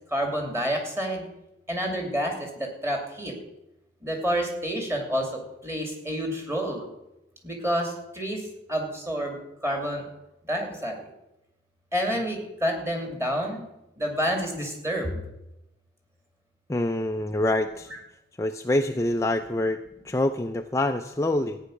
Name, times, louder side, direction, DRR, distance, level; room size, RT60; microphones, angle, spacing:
voice 1, 0.1-1.2 1.7-3.3 4.0-6.9 7.4-10.0 10.5-11.1 11.9-13.7 14.0-15.2, equal, 15° right, 2 dB, 2.7 m, -29 dB
voice 2, 16.7-17.9 18.4-21.6, left 1 dB, 15° left, 5 dB, 0.5 m, -26 dB
14.5 x 9.5 x 6.5 m, 0.92 s
head